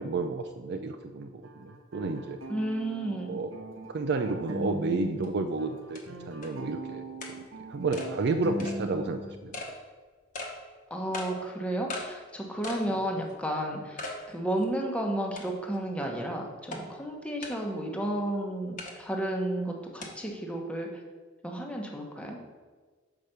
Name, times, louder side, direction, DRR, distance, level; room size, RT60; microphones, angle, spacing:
voice 1, 0.0-2.4 3.3-3.5 3.9-7.0 7.7-9.5 12.9-13.0, right 3 dB, 55° right, 6 dB, 0.4 m, -31 dB
sound 1, 1.4-5.3 5.6-9.4, equal, 85° right, 0.9 m, -40 dB
voice 2, 2.5-3.4 10.9-20.9 21.4-22.4, right 1 dB, 5° left, 0 dB, 1.0 m, -32 dB
sound 2, 5.2-5.3 5.9-6.0 6.4-6.5 7.2-7.3 7.9-8.1 8.6-8.8 9.5-9.7 10.3-10.5 11.1-11.3 11.9-12.1 12.6-12.9 13.3-13.4 14.0-14.2 14.6-14.7 15.4-15.7 16.7-16.8 17.4-17.6 18.8-18.9 20.0-20.1, left 2 dB, 40° left, 1.1 m, -38 dB
5.9 x 4.9 x 6.6 m, 1.5 s
head